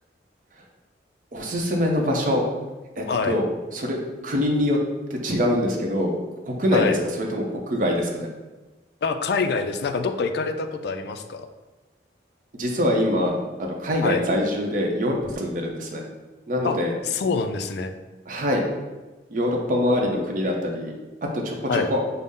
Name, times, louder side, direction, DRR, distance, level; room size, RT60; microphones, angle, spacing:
voice 1, 1.3-2.4 3.0-3.4 3.7-4.0 4.2-4.8 5.1-6.1 6.4-8.3 12.5-16.0 16.5-16.9 18.3-18.6 19.3-20.9 21.2-22.0, left 1 dB, 45° right, 0 dB, 0.6 m, -24 dB
voice 2, 9.0-11.5 14.0-14.2 16.6-16.8 17.0-17.9 21.7-21.9, left 4 dB, 60° left, 7 dB, 0.3 m, -25 dB
5.3 x 2.0 x 3.6 m, 1.2 s
head